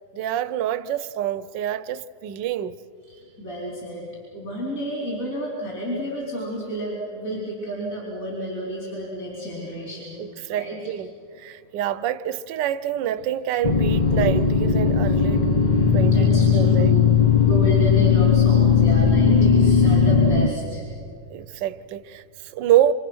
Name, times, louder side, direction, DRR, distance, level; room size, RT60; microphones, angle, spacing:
voice 1, 0.1-2.8 10.2-15.6 15.9-16.9 21.3-22.9, right 11 dB, 70° right, 1.3 m, -26 dB
voice 2, 3.1-10.2 10.5-10.9 15.6-20.8, equal, 40° left, 5.0 m, -31 dB
sound 1, 13.6-20.5, left 6 dB, 55° left, 0.4 m, -17 dB
27.5 x 26.5 x 6.3 m
omnidirectional pair, 2.2 m